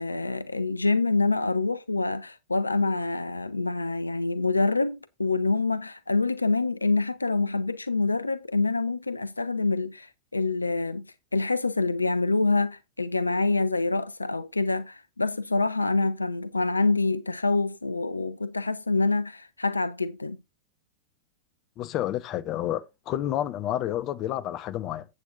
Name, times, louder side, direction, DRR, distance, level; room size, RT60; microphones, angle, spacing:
voice 1, 0.0-20.4, left 3 dB, 80° left, 0.4 m, -26 dB
voice 2, 21.8-25.1, left 12 dB, 35° left, 0.9 m, -30 dB
8.4 x 7.6 x 3.9 m
figure-of-eight pair, 90°, 0 cm